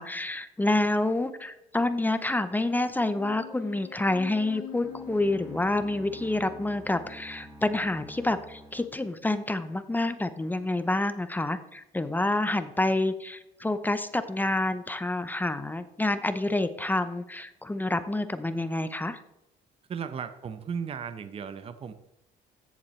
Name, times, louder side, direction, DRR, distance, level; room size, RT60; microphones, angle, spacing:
voice 1, 0.0-19.2, left 2 dB, 10° left, 11 dB, 0.7 m, -28 dB
sound 1, 3.0-7.9, left 11 dB, 55° left, 0.6 m, -46 dB
sound 2, 4.8-9.7, right 1 dB, 20° right, 2.0 m, -48 dB
voice 2, 19.9-21.9, right 6 dB, 35° right, 10 dB, 0.7 m, -35 dB
14.5 x 7.2 x 3.2 m, 0.91 s
cardioid pair, 110°, 17 cm